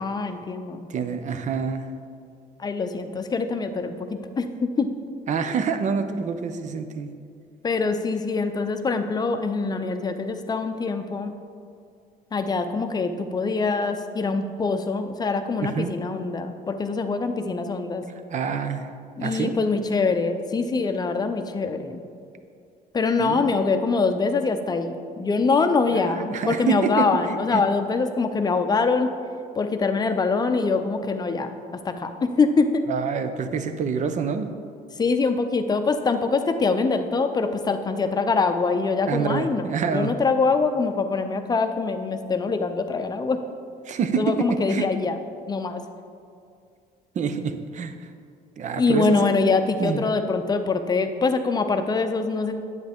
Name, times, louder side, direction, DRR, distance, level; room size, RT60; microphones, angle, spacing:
voice 1, 0.0-0.9 2.6-4.9 7.6-11.3 12.3-18.0 19.2-22.0 22.9-29.1 29.6-31.5 31.8-32.8 35.0-43.4 44.2-45.2 45.5-45.8 48.8-52.5, left 4 dB, 25° left, 7 dB, 0.6 m, -24 dB
voice 2, 0.9-1.9 5.3-7.1 15.6-15.9 18.3-18.9 19.2-19.5 23.2-23.5 25.9-27.6 32.9-34.5 39.1-40.2 43.9-44.9 47.1-48.1 48.6-49.5 49.8-50.0, right 6 dB, 45° right, 9 dB, 0.7 m, -27 dB
10.0 x 8.0 x 3.6 m, 2.3 s
cardioid pair, 110°, 17 cm